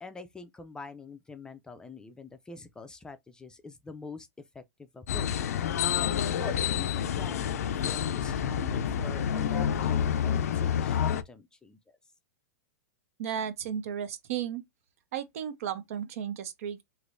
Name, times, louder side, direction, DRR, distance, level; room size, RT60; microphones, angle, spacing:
voice 1, 0.0-4.3 4.5-5.7 6.4-11.8, left 4 dB, 10° left, 0.4 m, -45 dB
sound 1, 5.1-11.2, left 8 dB, 80° left, 0.4 m, -28 dB
voice 2, 13.2-14.6 15.1-16.8, right 9 dB, 65° right, 0.7 m, -34 dB
3.2 x 2.9 x 2.6 m
hypercardioid pair, 135°, 8 cm